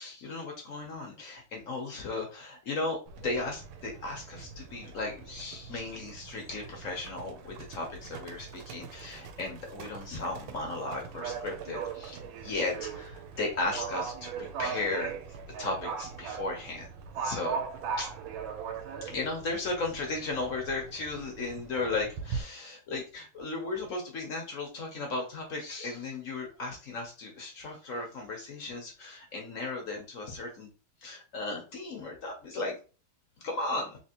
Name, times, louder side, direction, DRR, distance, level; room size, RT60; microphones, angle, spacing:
voice 1, 0.0-3.0 3.2-12.2 12.4-15.1 15.6-16.9 17.2-17.6 18.0-18.1 19.0-30.7 31.0-32.7 33.4-34.0, left 3 dB, 55° left, 1 dB, 1.0 m, -35 dB
Livestock farm animals working animals, 3.1-22.4, right 6 dB, 80° right, 1.4 m, -40 dB
3.4 x 2.9 x 2.9 m, 0.34 s
omnidirectional pair, 2.2 m